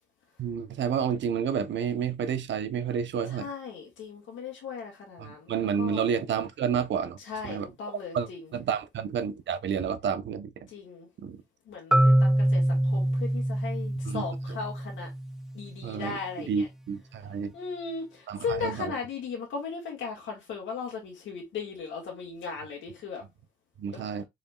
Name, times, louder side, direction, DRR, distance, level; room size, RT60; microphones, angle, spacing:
voice 1, 0.4-3.5 5.2-7.2 7.4-7.7 8.1-10.7 11.2-11.4 14.0-14.6 15.8-17.5 18.3-18.9 23.8-24.2, right 7 dB, 70° right, 0.9 m, -30 dB
voice 2, 3.3-5.5 5.8-6.1 7.2-8.4 10.7-11.1 11.7-15.1 15.5-16.7 17.5-23.2 23.9-24.2, left 5 dB, 85° left, 2.0 m, -37 dB
Marimba xylophone, 11.9-15.8, right 1 dB, 5° right, 0.3 m, -25 dB
5.2 x 4.2 x 2.4 m
cardioid pair, 70°, 20 cm